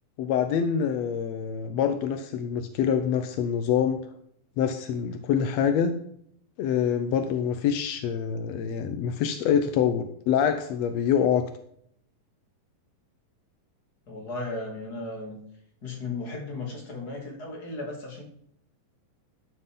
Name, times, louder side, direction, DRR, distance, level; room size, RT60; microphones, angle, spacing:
voice 1, 0.2-4.0 4.6-5.9 6.6-11.4, left 8 dB, 80° left, 8 dB, 1.5 m, -25 dB
voice 2, 14.1-15.4 15.8-18.2, left 3 dB, 30° left, -1 dB, 3.1 m, -35 dB
12.5 x 7.7 x 3.9 m, 0.67 s
omnidirectional pair, 4.0 m